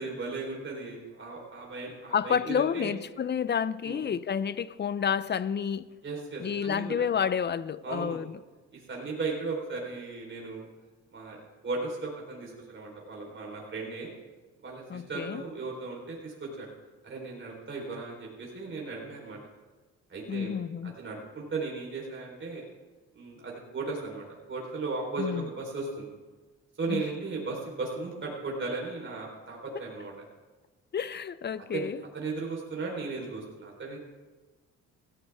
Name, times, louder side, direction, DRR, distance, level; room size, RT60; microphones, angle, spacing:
voice 1, 0.0-3.0 3.8-4.0 6.0-6.9 7.8-8.2 8.7-10.7 11.1-14.1 14.6-16.7 17.0-19.4 20.1-20.5 20.8-22.6 23.1-26.1 26.8-30.1 31.7-34.0, right 3 dB, 40° right, 3.9 m, -36 dB
voice 2, 2.1-5.9 6.4-8.4 14.9-15.4 20.3-21.0 25.2-25.5 26.9-27.0 30.9-32.0, left 7 dB, 35° left, 0.5 m, -30 dB
17.0 x 15.0 x 3.5 m
cardioid pair, 90°, 30 cm